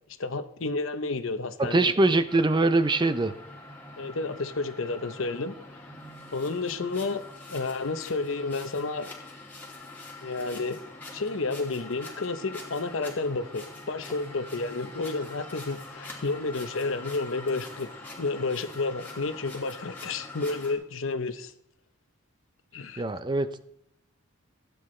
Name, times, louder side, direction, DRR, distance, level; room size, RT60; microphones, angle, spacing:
voice 1, 0.2-1.9 4.0-5.5 6.3-7.2 7.5-9.1 10.2-10.8 11.1-17.9 18.2-21.5 22.7-23.0, left 3 dB, 65° left, 0.8 m, -31 dB
voice 2, 1.6-3.3 23.0-23.6, right 2 dB, 20° right, 0.5 m, -23 dB
sound 1, 2.3-20.7, left 2 dB, 10° left, 2.8 m, -44 dB
16.0 x 9.4 x 3.2 m
head